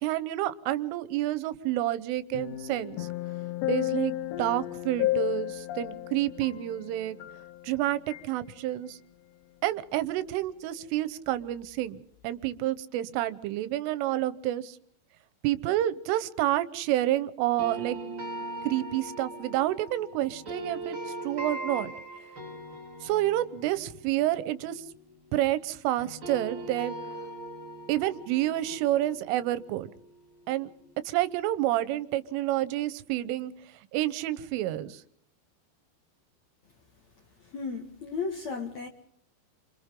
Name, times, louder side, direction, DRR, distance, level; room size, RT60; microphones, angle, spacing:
voice 1, 0.0-3.1 3.7-7.2 7.6-9.0 9.6-14.8 15.4-18.0 18.7-21.0 21.2-21.9 23.0-24.8 25.3-27.0 27.9-29.9 30.5-30.7 31.1-33.5 33.9-35.0, right 14 dB, 85° right, 15 dB, 3.5 m, -29 dB
sound 1, 2.3-7.8 8.1-8.3, left 15 dB, 75° left, 3.0 m, -33 dB
sound 2, 17.6-25.7 26.0-30.9, right 1 dB, 20° right, 4.3 m, -41 dB
voice 2, 37.5-38.9, left 4 dB, 50° left, 3 dB, 2.2 m, -34 dB
28.0 x 27.0 x 3.8 m, 0.63 s
omnidirectional pair, 5.6 m